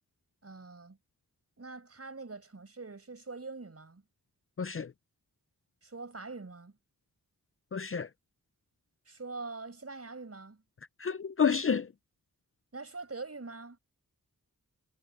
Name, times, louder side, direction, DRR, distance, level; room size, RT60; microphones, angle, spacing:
voice 1, 0.4-1.0 1.6-4.0 5.8-6.8 9.0-10.6 12.7-13.8, right 3 dB, 45° right, 6.6 m, -44 dB
voice 2, 4.6-4.9 7.7-8.1 11.0-11.9, left 6 dB, 40° left, 0.5 m, -29 dB
wide cardioid pair, 90°, 35 cm